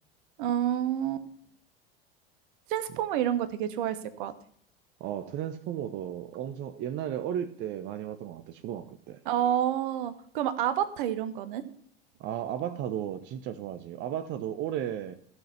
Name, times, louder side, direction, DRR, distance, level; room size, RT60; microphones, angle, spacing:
voice 1, 0.4-1.3 2.7-4.3 9.2-11.6, right 10 dB, 55° right, 1.1 m, -29 dB
voice 2, 5.0-9.2 12.2-15.1, right 10 dB, 40° right, 0.8 m, -34 dB
14.5 x 6.4 x 5.6 m
figure-of-eight pair, 75°, 30 cm